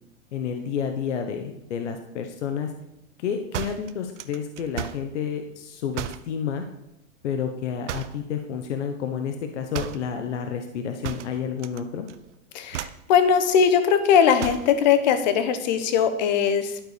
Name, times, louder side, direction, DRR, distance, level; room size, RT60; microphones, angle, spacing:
voice 1, 0.3-2.7 3.2-6.6 7.2-12.1, left 7 dB, 55° left, 6 dB, 1.2 m, -30 dB
sound 1, 3.5-5.1 5.9-6.3 7.9-8.3 9.7-10.1 11.0-11.8 12.1-12.4 12.7-13.1 14.4-14.8, right 11 dB, 60° right, 0.7 m, -34 dB
voice 2, 12.5-16.8, left 7 dB, 35° left, 10 dB, 1.1 m, -20 dB
11.5 x 8.8 x 5.1 m, 0.83 s
supercardioid pair, 175°, 41 cm